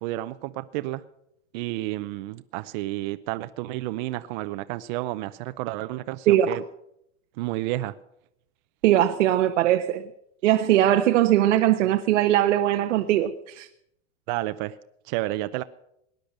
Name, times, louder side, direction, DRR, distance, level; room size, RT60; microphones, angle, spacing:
voice 1, 0.0-1.0 1.5-6.6 7.4-7.9 14.3-14.7 15.1-15.6, right 17 dB, 40° right, 0.6 m, -31 dB
voice 2, 8.8-10.0 10.4-13.7, right 12 dB, 80° right, 1.0 m, -20 dB
19.0 x 10.5 x 6.5 m
supercardioid pair, 155°, 36 cm